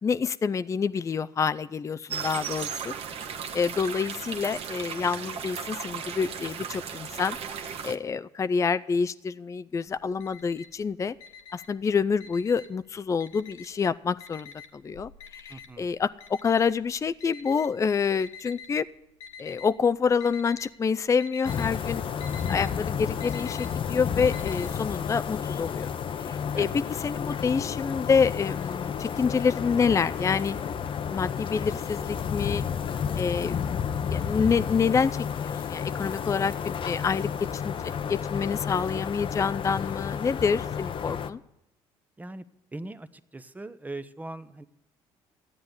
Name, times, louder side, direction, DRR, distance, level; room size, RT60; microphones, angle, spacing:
voice 1, 0.0-2.9 3.5-11.1 11.5-18.9 19.4-22.0 22.5-25.9 26.2-26.7 27.0-30.6 31.1-32.6 33.2-33.6 34.0-37.8 38.1-41.4, left 5 dB, 25° left, 13 dB, 0.4 m, -27 dB
sound 1, 2.1-8.0, right 7 dB, 60° right, 1.2 m, -36 dB
Alarm, 9.9-10.8 11.2-12.8 13.2-13.9 14.2-18.7 19.2-19.8 20.1-20.7 21.0-24.7, left 6 dB, 80° left, 1.8 m, -46 dB
voice 2, 15.5-15.9 26.5-26.8 42.2-42.4 42.7-44.6, right 2 dB, 15° right, 12 dB, 0.9 m, -40 dB
sound 2, 21.4-41.3, left 7 dB, 45° left, 0.8 m, -31 dB
14.5 x 8.8 x 9.5 m, 0.87 s
supercardioid pair, 80°, 12 cm